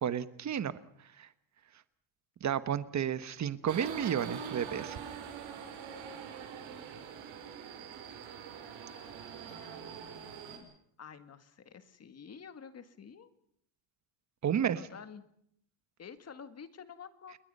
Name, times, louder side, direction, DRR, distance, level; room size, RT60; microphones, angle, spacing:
voice 1, 0.0-0.7 1.2-1.3 2.4-5.0 14.4-14.8, right 9 dB, 35° right, 14 dB, 1.3 m, -32 dB
Subway metro underground, 3.7-10.6, right 7 dB, 70° right, 6.6 m, -44 dB
voice 2, 6.6-7.9 9.5-13.3 14.8-15.2 16.0-17.4, left 6 dB, 30° left, 11 dB, 1.9 m, -51 dB
29.5 x 21.0 x 5.5 m, 0.69 s
cardioid pair, 160°, 48 cm